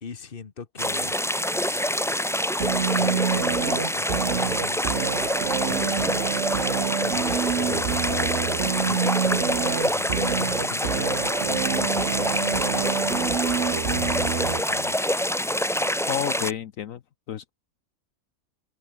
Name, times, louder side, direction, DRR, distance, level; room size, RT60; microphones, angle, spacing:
voice 1, 0.0-1.2 2.9-3.7 3.9-5.2 5.6-6.3 7.0-13.4 13.8-15.0, left 6 dB, 40° left, 1.5 m, -40 dB
sound 1, 0.8-16.5, equal, 5° left, 0.6 m, -26 dB
sound 2, 2.6-14.6, right 7 dB, 55° right, 1.4 m, -27 dB
voice 2, 16.1-17.0 17.3-17.5, left 10 dB, 70° left, 1.2 m, -30 dB
omnidirectional pair, 1.5 m